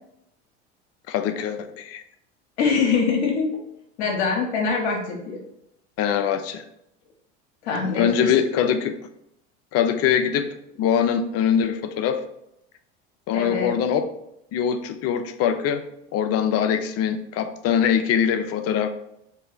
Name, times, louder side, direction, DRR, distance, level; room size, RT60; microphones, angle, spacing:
voice 1, 1.1-2.0 6.0-6.6 8.0-8.9 9.7-12.2 13.3-14.1 14.5-15.8 16.1-18.9, left 8 dB, 45° left, 8 dB, 0.5 m, -23 dB
voice 2, 2.6-3.5 4.0-5.4 7.6-8.3 13.3-13.7, left 5 dB, 75° left, -1 dB, 0.9 m, -23 dB
3.2 x 2.7 x 3.9 m, 0.79 s
hypercardioid pair, 85°, 34 cm